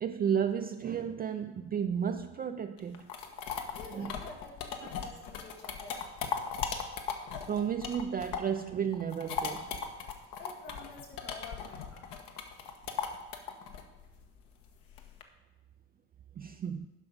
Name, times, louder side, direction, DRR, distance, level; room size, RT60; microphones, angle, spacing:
voice 1, 0.0-3.1 3.9-4.1 7.5-9.7 16.4-16.9, right 8 dB, 25° right, 0.4 m, -33 dB
sound 1, 2.8-8.6 8.9-15.2, left 6 dB, 65° left, 1.3 m, -38 dB
voice 2, 3.4-6.1 10.4-12.1, left 4 dB, 85° left, 2.5 m, -49 dB
11.0 x 5.8 x 5.2 m
hypercardioid pair, 75°, 37 cm